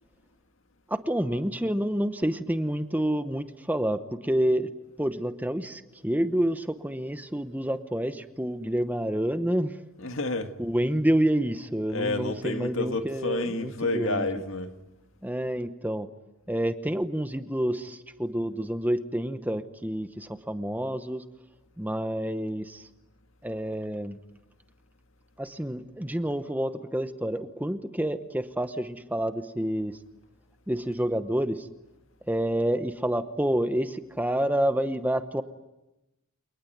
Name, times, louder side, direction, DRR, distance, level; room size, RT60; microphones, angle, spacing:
voice 1, 0.9-4.7 5.0-9.7 10.6-14.3 15.2-16.1 16.5-21.2 21.8-22.9 23.4-24.2 25.4-30.0 30.7-31.7 32.3-35.4, right 1 dB, 10° right, 0.9 m, -28 dB
voice 2, 10.0-10.5 11.9-14.7, left 2 dB, 70° left, 1.9 m, -30 dB
29.0 x 19.0 x 9.3 m
head